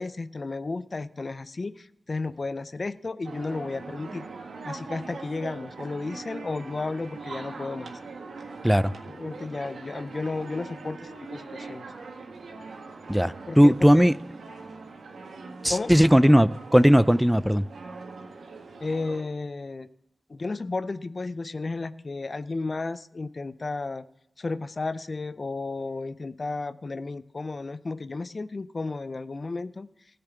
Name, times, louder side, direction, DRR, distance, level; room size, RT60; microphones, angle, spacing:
voice 1, 0.0-4.3 4.7-8.0 9.1-11.9 13.5-14.1 15.7-15.9 18.8-19.9 20.3-24.0 24.4-29.9, left 3 dB, 50° left, 15 dB, 0.5 m, -33 dB
sound 1, 3.2-19.2, right 3 dB, 85° right, 1.5 m, -42 dB
voice 2, 13.1-14.1 15.6-17.6, equal, 5° right, 17 dB, 0.4 m, -18 dB
13.5 x 6.8 x 8.3 m, 0.83 s
cardioid pair, 40°, 0 cm